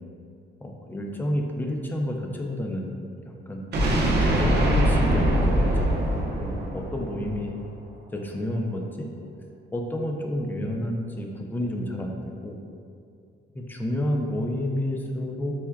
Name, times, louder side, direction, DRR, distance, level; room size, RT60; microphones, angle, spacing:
voice 1, 0.6-2.9 3.3-3.7 4.2-7.5 8.1-9.1 9.7-12.6 13.6-15.5, left 1 dB, 10° left, 1 dB, 0.4 m, -30 dB
sound 1, 3.7-7.7, right 1 dB, 55° right, 0.6 m, -23 dB
5.7 x 2.1 x 2.2 m, 2.4 s
cardioid pair, 90°, 20 cm